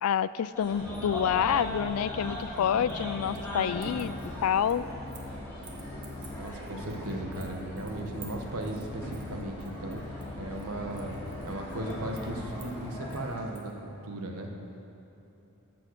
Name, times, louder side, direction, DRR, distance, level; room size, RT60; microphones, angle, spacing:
voice 1, 0.0-4.2 4.4-4.8, left 8 dB, 75° left, 17 dB, 0.3 m, -28 dB
sound 1, 0.5-13.4, left 1 dB, 10° left, 3.1 m, -40 dB
sound 2, 0.8-12.9, left 2 dB, 30° left, 1.5 m, -44 dB
sound 3, 2.4-3.5 3.8-5.3 5.6-13.7, right 6 dB, 40° right, 1.6 m, -54 dB
voice 2, 6.4-10.0 10.4-11.2 11.4-14.5, right 1 dB, 75° right, 2 dB, 1.4 m, -37 dB
13.0 x 7.8 x 6.5 m, 2.9 s
head